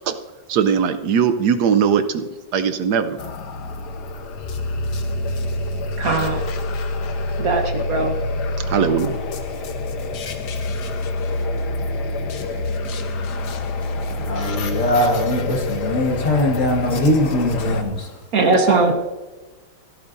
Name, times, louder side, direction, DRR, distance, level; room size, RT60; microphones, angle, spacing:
voice 1, 0.5-2.2 2.5-3.2 8.6-9.2, right 7 dB, 75° right, 10 dB, 1.2 m, -19 dB
sound 1, 3.2-17.8, left 2 dB, 75° left, 1.6 m, -26 dB
voice 2, 6.0-6.4 7.4-8.1 18.3-18.9, right 3 dB, 55° right, 4 dB, 1.7 m, -19 dB
voice 3, 14.2-18.1, left 1 dB, 50° left, 1 dB, 2.0 m, -21 dB
14.5 x 12.5 x 2.6 m, 1.2 s
omnidirectional pair, 1.8 m